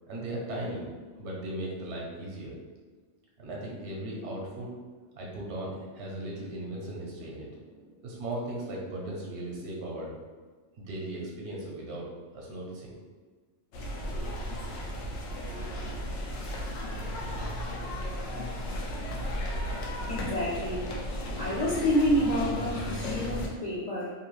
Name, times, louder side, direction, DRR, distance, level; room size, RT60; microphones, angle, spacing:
voice 1, 0.1-0.8 1.2-2.6 3.4-4.7 5.1-10.1 10.8-12.1 12.3-12.9, right 1 dB, 70° right, -3 dB, 0.9 m, -37 dB
sound 1, 13.7-23.5, equal, 90° left, 0.9 m, -34 dB
voice 2, 18.8-19.3 20.1-21.0 21.4-24.1, equal, 55° left, -7 dB, 0.4 m, -29 dB
2.7 x 2.3 x 3.0 m, 1.4 s
omnidirectional pair, 1.2 m